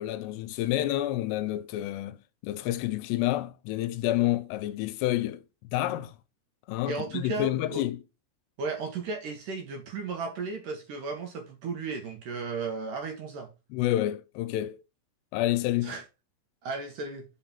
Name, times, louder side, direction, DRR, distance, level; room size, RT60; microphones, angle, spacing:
voice 1, 0.0-2.2 2.4-5.4 5.7-6.1 6.7-8.0 13.7-14.8 15.3-15.9, left 14 dB, 85° left, 2.6 m, -29 dB
voice 2, 6.9-7.8 8.6-13.5 15.8-16.0 16.6-17.3, right 4 dB, 65° right, 2.2 m, -35 dB
5.7 x 5.4 x 5.8 m
omnidirectional pair, 4.9 m